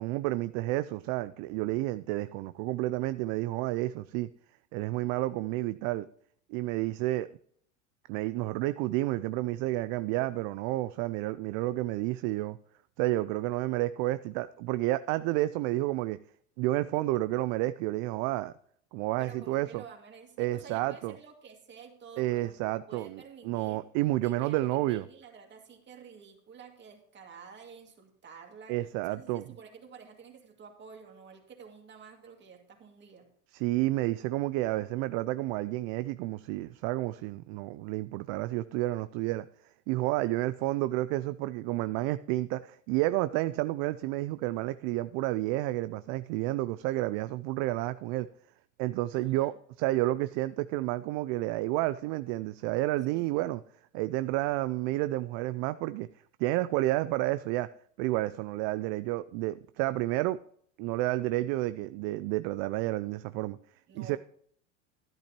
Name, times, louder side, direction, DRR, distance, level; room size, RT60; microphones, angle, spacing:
voice 1, 0.0-4.3 4.7-6.0 6.5-7.3 8.1-12.6 13.0-16.2 16.6-18.5 18.9-19.8 20.4-21.1 22.2-25.1 28.7-29.4 33.5-39.4 39.9-48.3 48.8-53.6 53.9-56.1 56.4-57.7 58.0-60.4 60.8-63.6 63.9-64.2, right 17 dB, 55° right, 0.5 m, -30 dB
voice 2, 19.2-23.8 24.2-28.8 29.0-33.3 49.1-49.6 53.1-53.3 63.9-64.2, right 6 dB, 30° right, 2.3 m, -50 dB
12.0 x 10.5 x 3.0 m
supercardioid pair, 105°, 36 cm